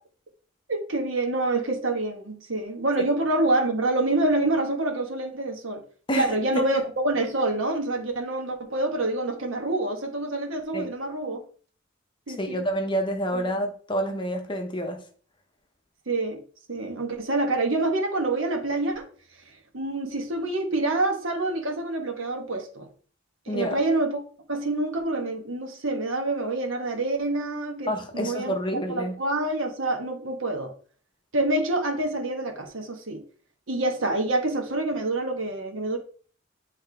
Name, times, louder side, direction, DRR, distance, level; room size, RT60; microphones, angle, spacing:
voice 1, 0.7-5.8 6.1-11.4 12.3-12.6 13.3-13.4 16.1-16.4 16.7-19.1 19.7-22.9 23.5-24.2 24.5-30.7 31.3-33.2 33.7-36.0, right 2 dB, 70° right, 1.2 m, -27 dB
voice 2, 6.1-6.6 10.7-10.9 12.3-15.0 23.5-23.8 27.9-29.1, equal, 25° left, 0.7 m, -28 dB
8.6 x 3.3 x 3.4 m
head